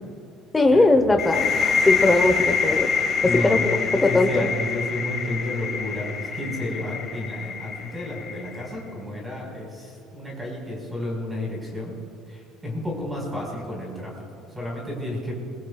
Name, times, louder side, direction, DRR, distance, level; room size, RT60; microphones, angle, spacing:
voice 1, 0.5-2.9 3.2-4.5, left 2 dB, 10° left, 6 dB, 1.0 m, -20 dB
sound 1, 1.2-8.7, left 5 dB, 30° left, 1.9 m, -26 dB
voice 2, 3.2-11.9 12.3-15.3, left 1 dB, 5° right, -2 dB, 4.9 m, -31 dB
26.5 x 22.0 x 2.4 m, 2.6 s
cardioid pair, 170°, 0 cm